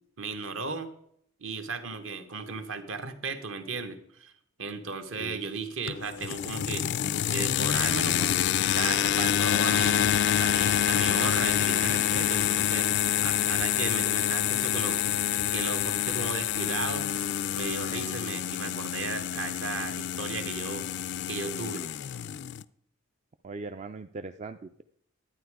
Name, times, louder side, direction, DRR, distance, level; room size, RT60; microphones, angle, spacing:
voice 1, 0.2-0.9 1.4-4.3 4.6-6.9 7.3-8.5 8.7-10.0 10.4-12.9 13.2-15.0 15.5-17.1 17.5-20.9 21.3-21.8, right 4 dB, 65° right, 9 dB, 1.2 m, -35 dB
sound 1, 5.9-22.6, left 10 dB, 50° left, 0.3 m, -27 dB
voice 2, 23.4-24.8, right 3 dB, 30° right, 9 dB, 0.3 m, -40 dB
11.5 x 9.1 x 4.8 m, 0.70 s
head